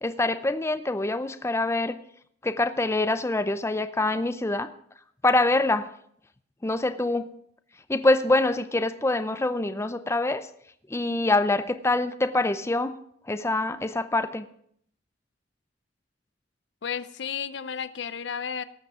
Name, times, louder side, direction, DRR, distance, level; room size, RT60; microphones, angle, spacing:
voice 1, 0.0-2.0 2.4-4.7 5.2-5.9 6.6-7.3 7.9-10.5 10.9-13.0 13.2-14.5, left 2 dB, 15° left, 10 dB, 0.5 m, -25 dB
voice 2, 16.8-18.6, left 7 dB, 80° left, 14 dB, 0.5 m, -32 dB
18.0 x 6.2 x 5.0 m, 0.67 s
head